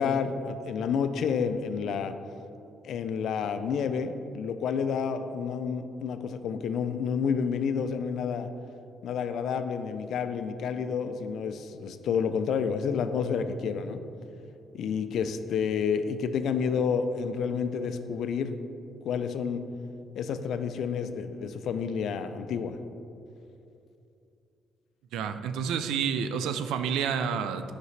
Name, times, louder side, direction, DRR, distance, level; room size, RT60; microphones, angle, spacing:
voice 1, 0.0-2.2 2.8-8.5 9.0-14.0 14.7-18.5 19.0-19.6 20.2-22.8, left 6 dB, 70° left, 10 dB, 0.4 m, -29 dB
voice 2, 25.1-27.7, right 7 dB, 90° right, 10 dB, 0.3 m, -29 dB
8.0 x 5.9 x 3.2 m, 2.7 s
cardioid pair, 90°, 0 cm